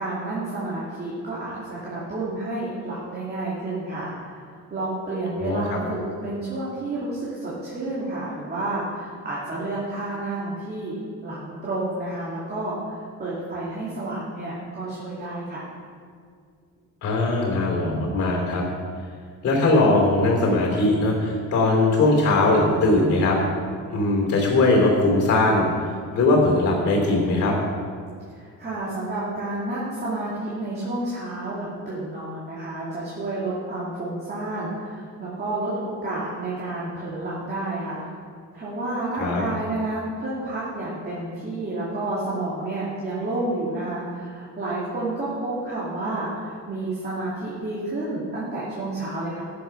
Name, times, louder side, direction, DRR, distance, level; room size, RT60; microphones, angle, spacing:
voice 1, 0.0-15.7 28.3-38.2 38.5-49.4, right 2 dB, 30° right, -8 dB, 2.6 m, -30 dB
voice 2, 5.4-5.8 17.0-18.6 19.4-23.4 23.9-27.6 39.2-39.4, left 2 dB, 45° left, 0 dB, 3.0 m, -20 dB
14.0 x 6.8 x 5.7 m, 2.1 s
cardioid pair, 155°, 33 cm